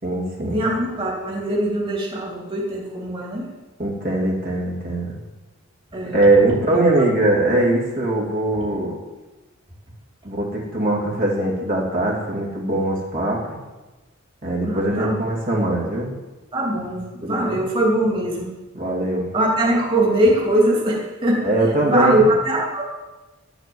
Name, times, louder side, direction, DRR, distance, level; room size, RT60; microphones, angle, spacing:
voice 1, 0.0-0.6 3.8-5.2 6.1-9.0 10.2-13.6 14.4-16.2 17.2-17.6 18.7-19.3 21.4-22.2, right 2 dB, 45° right, -3 dB, 2.7 m, -21 dB
voice 2, 0.5-3.5 5.9-6.2 6.7-7.0 14.6-15.1 16.5-18.5 19.3-21.4 21.9-22.8, right 1 dB, 25° right, -3 dB, 2.9 m, -21 dB
12.0 x 8.9 x 7.9 m, 1.2 s
head